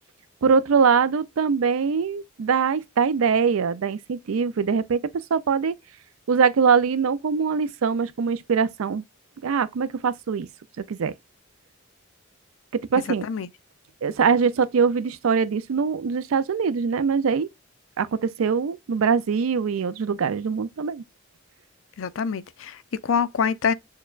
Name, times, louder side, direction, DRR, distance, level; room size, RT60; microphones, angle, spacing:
voice 1, 0.4-5.0 5.3-5.7 6.3-9.0 9.4-10.5 10.9-11.1 12.9-13.3 14.0-17.5 18.0-21.0, right 6 dB, 85° right, 0.4 m, -22 dB
voice 2, 22.0-23.7, left 6 dB, 70° left, 0.4 m, -25 dB
6.4 x 2.2 x 2.4 m
head